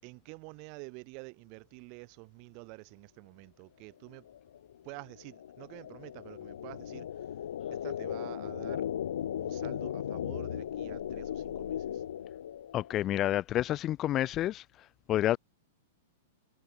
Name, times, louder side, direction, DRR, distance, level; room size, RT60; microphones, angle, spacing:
voice 1, 0.0-4.3 4.8-7.3 7.7-8.9 9.4-12.0, right 35 dB, 40° right, 4.5 m, -48 dB
sound 1, 4.1-13.0, left 10 dB, 80° left, 1.3 m, -37 dB
voice 2, 12.7-14.6 15.1-15.4, left 13 dB, 25° left, 0.3 m, -29 dB
supercardioid pair, 155°, 0 cm